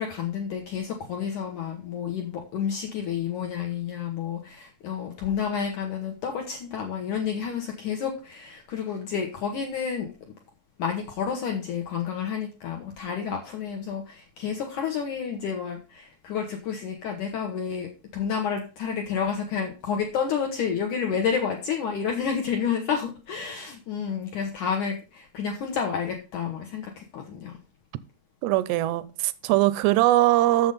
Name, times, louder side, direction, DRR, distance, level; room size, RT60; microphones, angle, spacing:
voice 1, 0.0-10.1 10.8-27.6, left 7 dB, 65° left, 2.1 m, -30 dB
voice 2, 28.4-30.7, right 15 dB, 80° right, 2.7 m, -21 dB
7.9 x 7.0 x 5.5 m
omnidirectional pair, 5.0 m